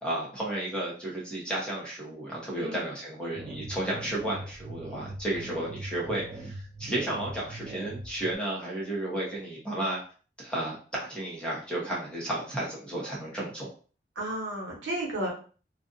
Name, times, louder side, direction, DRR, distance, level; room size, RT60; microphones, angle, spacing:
voice 1, 0.0-10.0 10.4-13.7, right 1 dB, 5° left, -5 dB, 0.9 m, -33 dB
sound 1, 3.4-8.3, right 2 dB, 25° right, 0.3 m, -41 dB
voice 2, 14.1-15.3, right 1 dB, 85° right, -2 dB, 1.0 m, -33 dB
2.4 x 2.4 x 2.6 m, 0.38 s
head